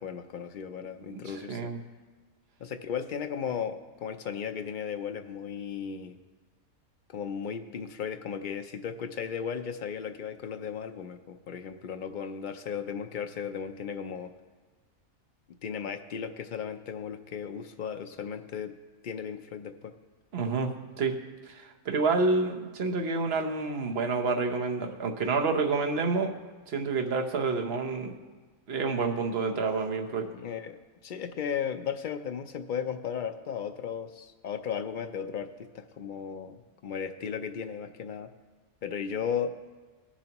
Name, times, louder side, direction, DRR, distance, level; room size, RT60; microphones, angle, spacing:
voice 1, 0.0-1.7 2.6-6.2 7.1-14.3 15.6-18.8 19.0-19.9 30.3-38.3 38.8-39.5, left 7 dB, 65° left, 7 dB, 0.4 m, -35 dB
voice 2, 1.1-1.8 20.3-20.7 21.0-21.2 21.4-26.3 26.7-28.1 28.7-30.3, right 4 dB, 50° right, 4 dB, 1.1 m, -28 dB
19.0 x 7.1 x 3.0 m, 1.3 s
omnidirectional pair, 1.5 m